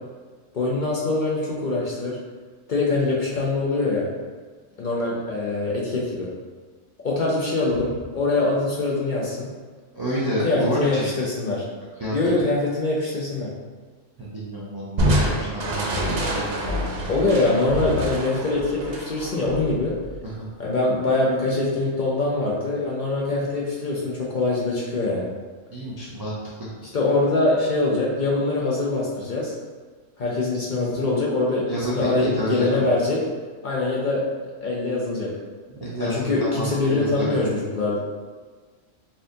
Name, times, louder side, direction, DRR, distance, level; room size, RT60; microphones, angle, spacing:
voice 1, 0.5-2.2 2.7-4.1 4.8-6.3 7.0-9.5 10.2-11.7 12.1-13.5 17.1-19.9 20.6-25.3 26.9-29.5 30.2-31.6 31.9-33.2 33.6-34.2 34.6-35.3 36.0-38.0, left 2 dB, 55° left, -4 dB, 0.5 m, -23 dB
voice 2, 9.9-11.1 12.0-12.2 14.2-16.6 20.2-20.5 25.7-26.7 31.6-32.8 35.7-37.4, right 1 dB, 40° right, -8 dB, 0.3 m, -29 dB
Crushing, 15.0-20.4, equal, 60° right, 0.8 m, -26 dB
4.2 x 2.5 x 2.6 m, 1.4 s
omnidirectional pair, 1.3 m